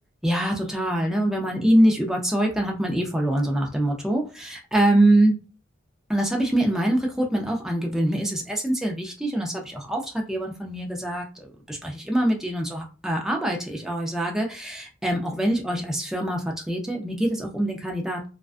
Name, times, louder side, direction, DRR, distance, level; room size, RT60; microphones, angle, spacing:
voice 1, 0.2-5.4 6.1-18.3, right 1 dB, 5° right, 0 dB, 0.4 m, -24 dB
2.3 x 2.2 x 2.4 m, 0.33 s
head